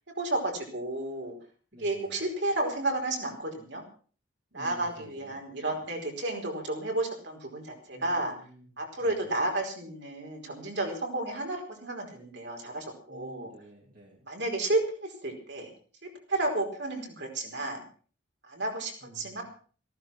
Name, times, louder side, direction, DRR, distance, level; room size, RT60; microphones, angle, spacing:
voice 1, 0.2-1.3 1.8-3.8 4.5-8.3 8.8-13.5 14.2-15.7 16.0-17.8 18.5-19.4, right 2 dB, 60° right, 1 dB, 4.8 m, -32 dB
voice 2, 1.7-2.2 4.5-5.4 5.7-5.8 7.9-9.3 13.1-14.3 19.0-19.4, equal, 40° right, -2 dB, 3.5 m, -51 dB
15.5 x 14.0 x 5.9 m, 0.42 s
head